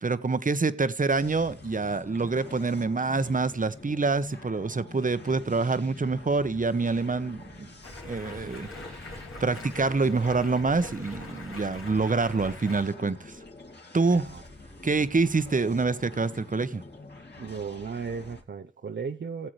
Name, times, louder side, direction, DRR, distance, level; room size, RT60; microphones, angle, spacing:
voice 1, 0.0-7.7 8.0-9.1 9.4-13.3 13.9-14.3 14.8-16.8, right 3 dB, 40° right, 1.0 m, -26 dB
sound 1, 1.1-18.4, left 2 dB, 55° left, 2.5 m, -47 dB
Stream, 7.8-12.8, left 2 dB, 90° left, 3.1 m, -42 dB
voice 2, 14.1-14.4 15.0-15.1 17.4-19.5, right 5 dB, 55° right, 0.7 m, -36 dB
17.5 x 7.5 x 3.2 m
cardioid pair, 45°, 21 cm